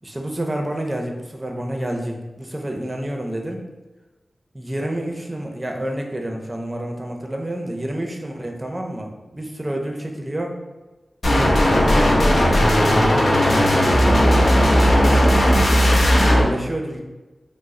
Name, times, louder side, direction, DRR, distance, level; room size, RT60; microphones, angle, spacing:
voice 1, 0.0-3.6 4.5-10.6 11.3-14.5 14.8-15.8 16.3-17.0, right 1 dB, 25° right, 2 dB, 0.5 m, -29 dB
sound 1, 11.2-16.4, equal, 75° left, 0.6 m, -16 dB
3.0 x 2.0 x 3.7 m, 1.1 s
cardioid pair, 45°, 0 cm